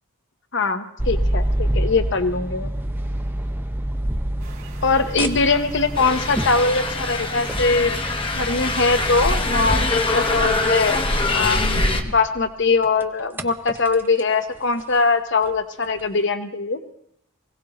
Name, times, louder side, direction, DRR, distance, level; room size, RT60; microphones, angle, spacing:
voice 1, 0.5-2.7 4.8-7.9 8.4-11.0 11.3-16.8, left 4 dB, 55° left, 9 dB, 0.9 m, -21 dB
sound 1, 1.0-12.5 12.8-14.2 14.6-14.8 15.5-15.6 16.0-16.1, right 1 dB, 10° right, 0.5 m, -28 dB
sound 2, 4.4-12.0, equal, 85° right, 2.7 m, -31 dB
sound 3, 5.9-12.0, left 3 dB, 25° left, 0.9 m, -24 dB
21.0 x 17.0 x 3.0 m, 0.78 s
head